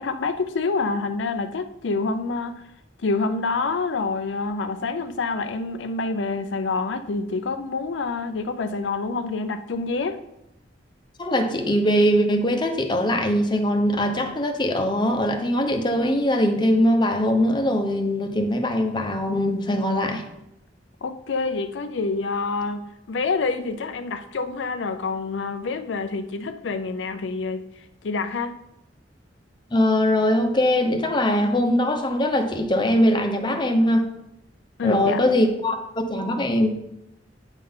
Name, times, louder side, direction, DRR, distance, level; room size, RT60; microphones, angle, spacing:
voice 1, 0.0-2.7 3.0-10.2 21.0-27.6 28.0-28.5 34.8-35.2, left 3 dB, 85° left, 0.5 m, -27 dB
voice 2, 11.2-20.2 29.7-34.1 34.8-36.7, left 1 dB, 25° left, 0.9 m, -21 dB
9.0 x 3.8 x 5.5 m
head